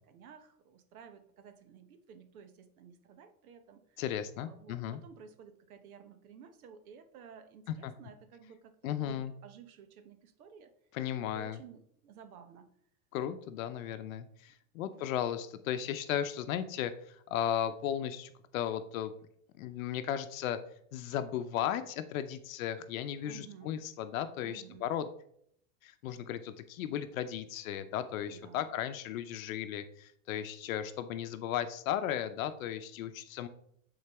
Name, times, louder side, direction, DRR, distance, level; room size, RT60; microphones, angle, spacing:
voice 1, 0.1-4.0 4.4-10.7 11.3-12.7 14.8-15.1 23.2-23.8 24.4-24.9 28.3-28.6, right 7 dB, 85° right, 9 dB, 1.1 m, -54 dB
voice 2, 4.0-5.0 7.8-7.9 8.8-9.3 10.9-11.6 13.1-19.1 19.6-20.6 20.9-25.1 25.8-33.5, left 10 dB, 70° left, 10 dB, 0.7 m, -35 dB
9.6 x 4.0 x 3.4 m, 0.68 s
supercardioid pair, 155°, 42 cm